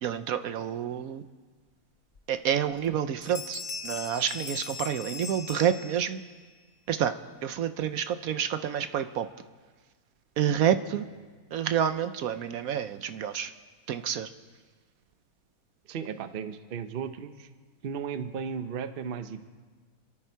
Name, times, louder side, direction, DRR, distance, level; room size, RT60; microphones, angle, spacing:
voice 1, 0.0-1.2 2.3-6.2 6.9-9.3 10.4-11.0 11.5-13.5 13.9-14.3, right 9 dB, 75° right, 11 dB, 1.1 m, -29 dB
Bell, 2.1-2.2 2.7-3.0 3.2-6.4, left 5 dB, 40° left, 0.9 m, -39 dB
voice 2, 15.9-17.5 17.8-19.5, right 7 dB, 45° right, 10 dB, 0.8 m, -35 dB
28.5 x 11.0 x 4.5 m, 1.5 s
omnidirectional pair, 1.6 m